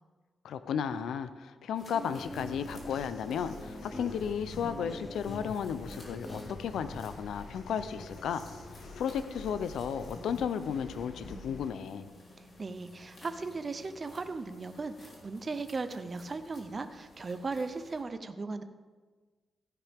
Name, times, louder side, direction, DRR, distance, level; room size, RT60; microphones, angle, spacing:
voice 1, 0.4-8.4 9.0-12.1, left 7 dB, 90° left, 12 dB, 0.5 m, -34 dB
sound 1, 1.7-18.0, left 1 dB, 40° left, 3.4 m, -56 dB
Guitar, 1.8-7.1, equal, 5° left, 0.8 m, -45 dB
sound 2, 2.2-11.7, left 2 dB, 75° left, 1.5 m, -46 dB
voice 2, 12.4-18.6, right 3 dB, 30° right, 9 dB, 0.6 m, -37 dB
15.0 x 10.5 x 3.5 m, 1.4 s
wide cardioid pair, 130°, 0 cm